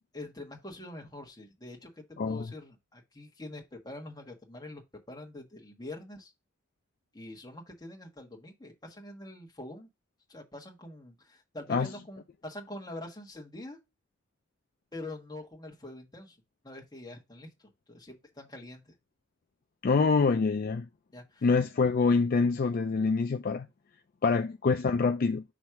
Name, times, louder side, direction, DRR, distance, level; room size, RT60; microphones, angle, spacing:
voice 1, 0.1-6.3 7.1-9.9 10.3-13.8 14.9-16.4 16.6-17.5 17.9-18.9 21.1-21.5, left 1 dB, 20° left, 1.3 m, -45 dB
voice 2, 19.8-20.9 21.4-23.7 24.2-25.4, left 4 dB, 45° left, 0.4 m, -25 dB
6.1 x 3.2 x 5.7 m
head